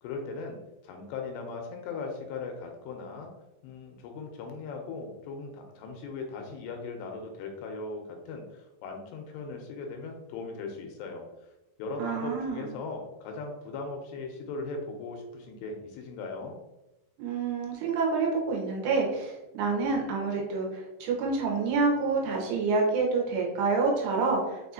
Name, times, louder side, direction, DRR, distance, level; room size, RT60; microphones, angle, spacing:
voice 1, 0.0-0.6 0.8-3.3 3.6-11.2 11.8-16.6, left 3 dB, 90° left, 3 dB, 2.8 m, -38 dB
voice 2, 12.0-12.7 17.2-24.7, right 4 dB, 90° right, -1 dB, 2.9 m, -28 dB
6.6 x 2.4 x 2.7 m, 0.97 s
omnidirectional pair, 4.8 m